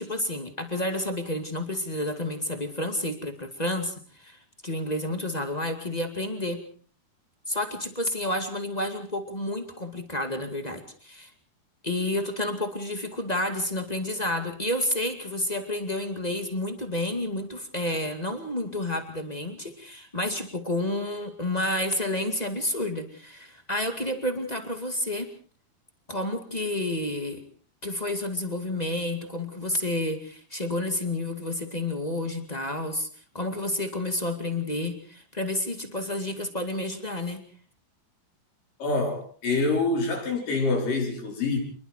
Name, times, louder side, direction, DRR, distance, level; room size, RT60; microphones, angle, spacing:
voice 1, 0.0-6.6 7.5-11.3 11.8-25.3 26.1-27.4 27.8-33.1 33.3-37.4, left 1 dB, 20° left, 6 dB, 1.3 m, -30 dB
voice 2, 38.8-41.6, left 3 dB, 60° left, 1 dB, 6.4 m, -26 dB
27.5 x 21.5 x 4.4 m, 0.43 s
omnidirectional pair, 4.5 m